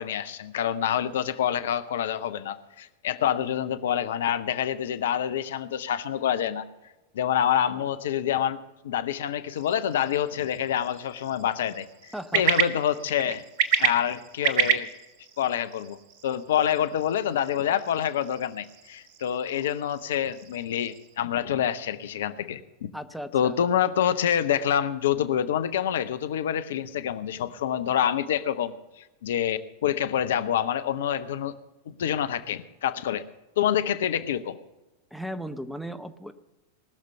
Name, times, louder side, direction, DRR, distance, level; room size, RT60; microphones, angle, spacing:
voice 1, 0.0-6.6 7.1-8.6 8.8-13.4 13.8-14.9 15.4-16.0 16.2-22.9 23.3-31.5 32.0-33.3 33.6-34.6, left 9 dB, 60° left, 13 dB, 0.6 m, -27 dB
sound 1, 9.5-21.1, right 8 dB, 50° right, 1.0 m, -32 dB
voice 2, 12.1-12.4 22.9-23.6 35.1-36.3, equal, ahead, 11 dB, 0.8 m, -36 dB
19.5 x 6.6 x 6.7 m, 1.0 s
figure-of-eight pair, 90°, 0 cm